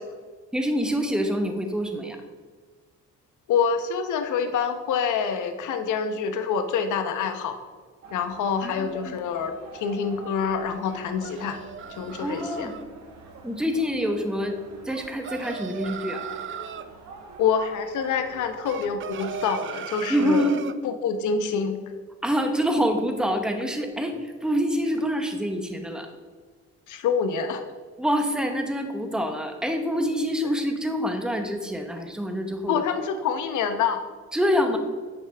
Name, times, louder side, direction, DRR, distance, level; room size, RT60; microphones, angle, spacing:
voice 1, 0.5-2.2 8.6-9.0 12.2-12.8 13.4-14.6 14.8-16.2 20.1-20.7 22.2-26.1 28.0-32.8 34.3-34.8, equal, ahead, 5 dB, 1.0 m, -26 dB
voice 2, 3.5-7.6 8.1-11.6 12.0-12.7 17.4-20.5 20.8-21.8 26.9-27.6 32.7-34.0, left 6 dB, 80° left, 7 dB, 0.9 m, -26 dB
sound 1, 8.0-19.4, right 3 dB, 65° right, 1.6 m, -45 dB
Rooster crowing - very close, 10.8-12.8 14.9-16.9 18.6-20.8, right 8 dB, 40° right, 0.4 m, -38 dB
10.0 x 5.7 x 3.4 m, 1.5 s
cardioid pair, 90°, 30 cm